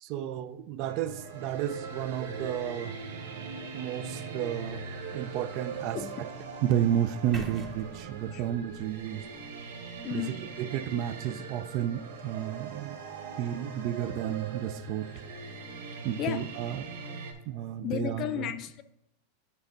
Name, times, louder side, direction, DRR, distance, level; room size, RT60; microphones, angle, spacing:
voice 1, 0.0-3.0 3.7-4.9 5.1-6.3 6.6-9.2 10.1-10.3 10.6-13.0 13.4-15.2 16.0-16.9 17.5-18.5, right 10 dB, 50° right, 0.4 m, -32 dB
sound 1, 0.8-17.3, right 5 dB, 80° right, 0.9 m, -41 dB
voice 2, 5.9-6.3 8.3-8.4 10.0-10.4 16.2-16.5 17.8-18.8, left 11 dB, 40° left, 0.4 m, -34 dB
sound 2, 7.3-11.3, right 3 dB, 20° right, 1.0 m, -47 dB
9.0 x 3.5 x 3.9 m
supercardioid pair, 130°, 0 cm